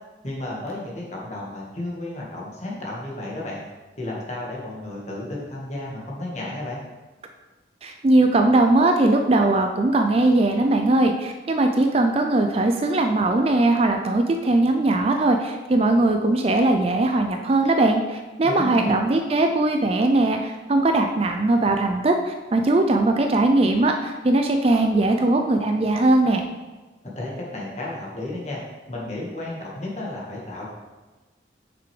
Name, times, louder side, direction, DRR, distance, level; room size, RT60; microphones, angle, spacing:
voice 1, 0.2-3.6 4.0-6.8 18.4-18.9 27.0-28.6 28.9-30.7, left 1 dB, 35° left, -4 dB, 1.6 m, -33 dB
voice 2, 7.8-26.5, right 2 dB, 30° right, 4 dB, 0.4 m, -20 dB
6.7 x 5.9 x 3.3 m, 1.2 s
head